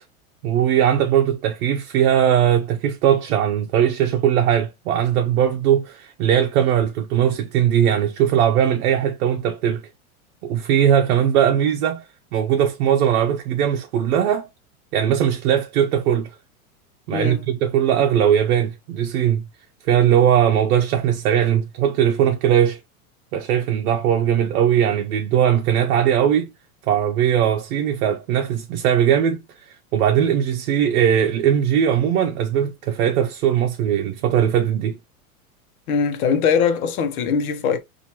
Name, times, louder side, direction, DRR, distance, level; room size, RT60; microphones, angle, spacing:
voice 1, 0.4-9.8 10.4-12.0 12.3-14.5 14.9-16.3 17.1-19.4 19.9-22.8 23.3-26.5 26.9-35.0, right 9 dB, 70° right, 0.6 m, -19 dB
voice 2, 17.1-17.4 35.9-37.8, left 6 dB, 75° left, 0.9 m, -21 dB
4.3 x 2.6 x 2.9 m
supercardioid pair, 125°, 44 cm